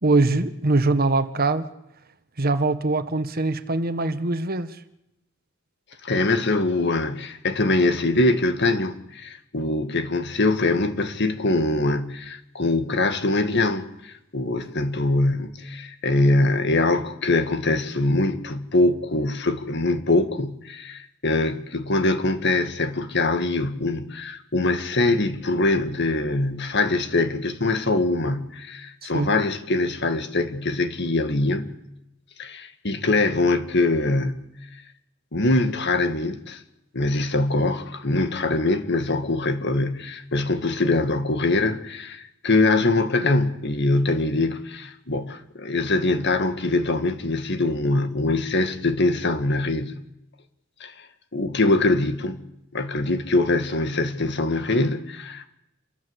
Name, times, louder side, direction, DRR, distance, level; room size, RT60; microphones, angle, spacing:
voice 1, 0.0-1.7 2.4-4.8 29.1-29.3, right 2 dB, 50° right, 1.5 m, -22 dB
voice 2, 6.0-31.8 32.4-34.5 35.3-36.6 36.9-50.0 50.8-51.1 51.3-52.4 52.7-55.5, left 2 dB, 60° left, 2.0 m, -23 dB
28.0 x 24.0 x 8.2 m
head